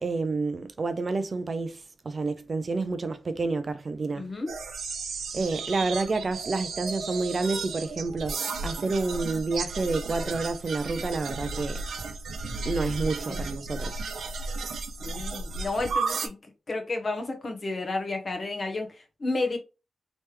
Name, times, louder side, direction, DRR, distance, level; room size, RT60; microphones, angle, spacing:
voice 1, 0.0-4.3 5.3-11.8 12.7-14.0, right 3 dB, 35° right, 0.4 m, -29 dB
voice 2, 4.2-4.5 13.3-13.4 15.0-16.4 16.7-19.6, left 2 dB, 35° left, 0.9 m, -31 dB
sound 1, 4.5-16.3, right 3 dB, 90° right, 0.6 m, -34 dB
3.3 x 3.0 x 3.2 m
wide cardioid pair, 140°, 0 cm